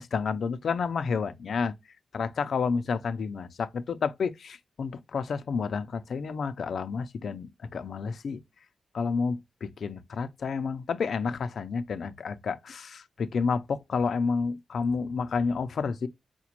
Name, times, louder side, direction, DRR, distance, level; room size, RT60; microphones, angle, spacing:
voice 1, 0.0-1.7 2.1-8.4 8.9-16.1, left 5 dB, 65° left, 0.4 m, -30 dB
4.9 x 2.2 x 2.9 m
wide cardioid pair, 140°, 0 cm